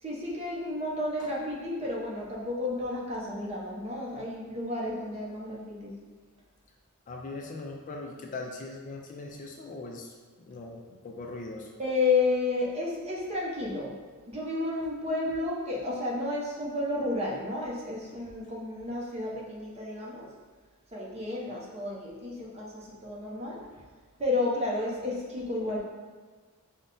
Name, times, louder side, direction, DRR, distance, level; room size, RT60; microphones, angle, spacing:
voice 1, 0.0-6.0 11.8-13.9 14.3-20.3 20.9-23.8 24.2-25.8, left 2 dB, 30° right, -4 dB, 0.7 m, -31 dB
voice 2, 7.1-10.1 10.5-11.7, left 3 dB, 35° left, 1 dB, 0.4 m, -40 dB
5.3 x 2.1 x 3.7 m, 1.4 s
head